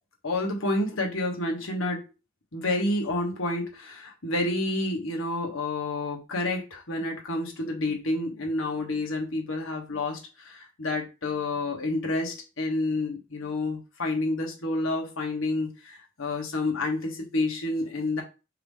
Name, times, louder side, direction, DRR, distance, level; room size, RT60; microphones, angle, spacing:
voice 1, 0.2-2.1 2.5-18.2, left 2 dB, 70° left, 0 dB, 1.4 m, -29 dB
4.7 x 2.9 x 3.6 m, 0.30 s
head